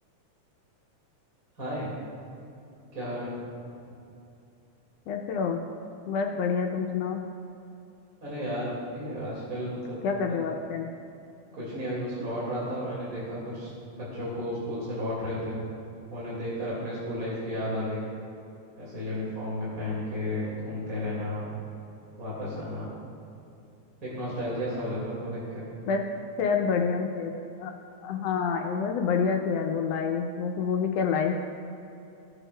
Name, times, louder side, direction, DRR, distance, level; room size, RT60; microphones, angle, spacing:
voice 1, 1.6-1.9 2.9-3.3 8.2-10.0 11.5-15.6 16.1-18.0 18.8-21.6 22.2-22.9 24.0-25.7, equal, 35° right, -8 dB, 2.1 m, -33 dB
voice 2, 5.1-5.6 6.1-7.2 10.0-10.9 25.9-26.0 26.4-27.3 27.6-27.7 28.0-31.4, left 6 dB, 85° left, 3 dB, 1.4 m, -27 dB
15.5 x 8.1 x 2.2 m, 2.7 s
omnidirectional pair, 3.4 m